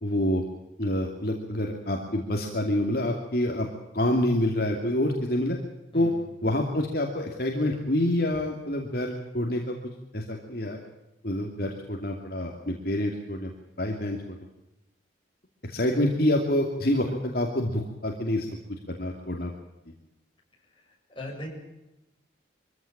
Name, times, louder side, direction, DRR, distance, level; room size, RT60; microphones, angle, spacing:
voice 1, 0.0-0.4 0.8-3.7 3.9-5.6 5.9-6.1 6.4-9.8 10.1-10.8 11.2-13.5 13.8-14.4 15.6-18.5 18.9-19.5, left 1 dB, 50° left, 1 dB, 2.7 m, -27 dB
voice 2, 5.9-6.2 20.8-21.5, left 1 dB, 25° left, -1 dB, 7.4 m, -39 dB
24.0 x 16.0 x 8.7 m, 0.95 s
head